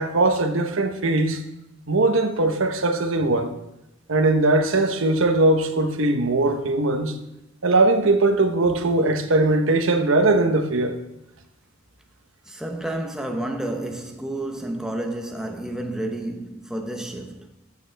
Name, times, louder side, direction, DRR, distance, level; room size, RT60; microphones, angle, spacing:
voice 1, 0.0-1.4 1.9-3.5 4.1-7.2 7.6-11.0, right 2 dB, 85° right, 1.0 m, -20 dB
voice 2, 12.5-17.5, right 1 dB, 5° right, 0.8 m, -30 dB
14.0 x 6.6 x 3.4 m
head